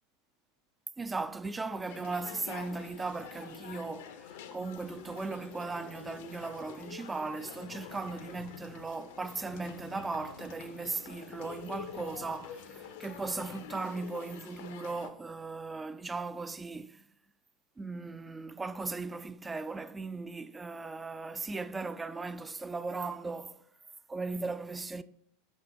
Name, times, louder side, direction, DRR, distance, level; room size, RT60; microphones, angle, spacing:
voice 1, 1.0-17.0 17.8-23.6 24.1-25.0, right 3 dB, 15° right, 0.3 m, -37 dB
sound 1, 1.9-15.1, left 8 dB, 60° left, 0.6 m, -47 dB
7.1 x 5.8 x 2.9 m
figure-of-eight pair, 85°, 0 cm